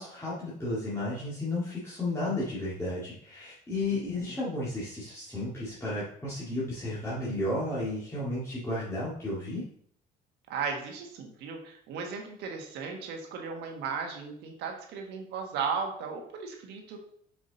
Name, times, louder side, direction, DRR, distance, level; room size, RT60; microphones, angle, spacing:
voice 1, 0.0-9.6, left 2 dB, 15° left, -9 dB, 2.1 m, -33 dB
voice 2, 10.5-17.0, right 5 dB, 85° right, 2 dB, 1.5 m, -36 dB
5.9 x 5.0 x 3.9 m, 0.64 s
cardioid pair, 110°, 17 cm